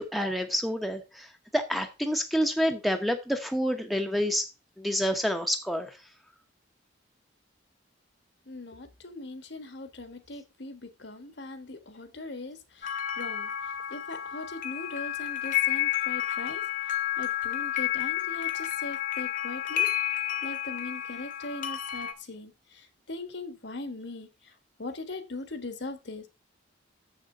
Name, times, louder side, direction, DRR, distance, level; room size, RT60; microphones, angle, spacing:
voice 1, 0.0-4.5 4.8-6.0, equal, ahead, 0.9 m, -28 dB
voice 2, 8.5-19.9 20.4-24.5 24.8-26.3, left 2 dB, 65° left, 1.4 m, -40 dB
sound 1, 12.8-22.1, left 12 dB, 40° left, 1.0 m, -31 dB
7.5 x 6.5 x 5.4 m
head